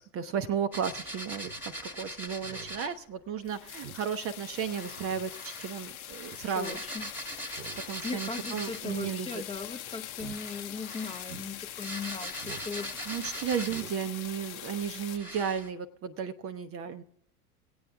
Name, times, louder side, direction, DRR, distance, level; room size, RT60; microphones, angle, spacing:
voice 1, 0.0-1.5 2.0-6.8 7.9-9.3 13.1-17.0, right 7 dB, 30° right, 8 dB, 0.6 m, -34 dB
sound 1, 0.7-3.0 4.7-9.0 10.2-14.1 14.6-14.7 15.1-15.7, equal, 5° right, 1.2 m, -41 dB
Speech synthesizer, 1.4-1.6 2.0-2.1 2.4-2.8 3.2-3.3 3.8-4.0 4.4-4.5 4.9-5.3 6.2-6.5 7.5-7.9 8.1-8.2 8.8-9.2 9.4-9.7 10.1-10.4 10.8-10.9 11.3-11.5 12.4-12.7 13.0-13.2 13.6-13.9 14.3-14.4, right 7 dB, 90° right, 0.7 m, -47 dB
sound 2, 3.4-15.2, left 11 dB, 65° left, 0.8 m, -43 dB
voice 2, 6.5-7.1 8.0-12.9, left 5 dB, 15° left, 7 dB, 0.7 m, -38 dB
24.5 x 8.6 x 3.5 m, 0.75 s
hypercardioid pair, 90°, 46 cm